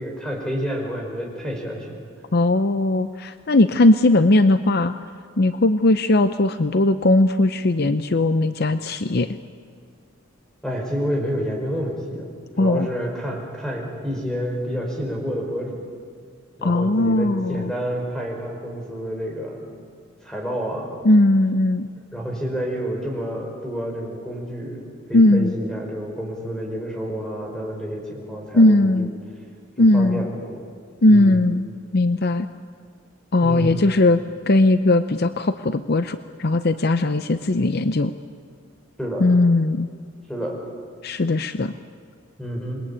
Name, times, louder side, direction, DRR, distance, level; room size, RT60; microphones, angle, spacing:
voice 1, 0.0-2.0 10.6-12.3 12.5-15.8 16.6-19.7 20.2-21.0 22.1-29.1 29.8-30.6 31.1-31.4 33.4-33.8 39.0-39.2 40.3-40.6 42.4-42.8, equal, 5° left, 0 dB, 5.4 m, -29 dB
voice 2, 2.3-4.9 5.4-9.4 12.6-12.9 16.6-17.7 21.0-21.9 25.1-25.5 28.5-29.1 29.8-30.3 31.0-31.7 31.9-32.5 33.3-38.1 39.2-39.9 41.0-41.7, left 2 dB, 50° left, 11 dB, 0.7 m, -18 dB
27.0 x 22.0 x 8.7 m, 2.1 s
head